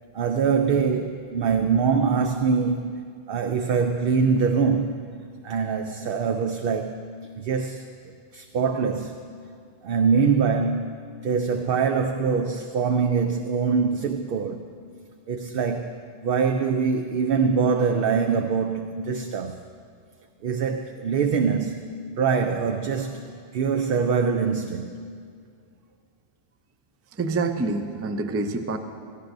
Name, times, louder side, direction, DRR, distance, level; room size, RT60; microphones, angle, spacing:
voice 1, 0.1-4.9 5.4-7.0 7.4-7.8 8.3-9.2 9.8-14.6 15.3-16.0 16.2-19.6 20.4-21.8 22.2-23.2 23.5-25.0, right 5 dB, 70° right, 0.7 m, -23 dB
voice 2, 27.2-28.8, right 3 dB, 25° right, 0.3 m, -26 dB
17.5 x 14.0 x 2.6 m
omnidirectional pair, 1.1 m